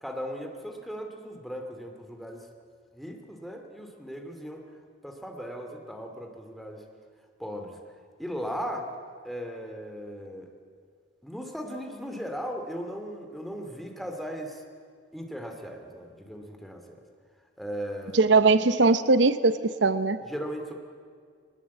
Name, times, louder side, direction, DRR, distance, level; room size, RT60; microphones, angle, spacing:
voice 1, 0.0-2.5 2.9-4.6 5.0-6.8 7.4-7.8 8.2-8.9 9.2-10.5 11.2-14.6 15.1-17.0 17.6-18.2 20.3-20.7, equal, ahead, 3 dB, 2.4 m, -37 dB
voice 2, 18.1-20.2, right 3 dB, 80° right, 13 dB, 0.8 m, -20 dB
21.0 x 20.0 x 8.4 m, 2.1 s
head